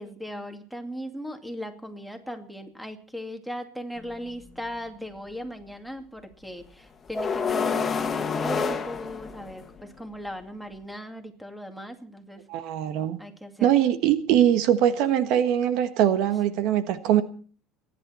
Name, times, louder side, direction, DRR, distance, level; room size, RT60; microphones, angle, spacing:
voice 1, 0.0-12.4 13.2-13.7, equal, ahead, 7 dB, 2.5 m, -38 dB
sound 1, 4.0-4.1 7.1-9.8, left 5 dB, 25° left, 1.8 m, -28 dB
voice 2, 12.5-13.2 13.6-17.2, right 10 dB, 65° right, 11 dB, 1.3 m, -22 dB
29.0 x 11.0 x 4.3 m, 0.43 s
supercardioid pair, 115°, 0 cm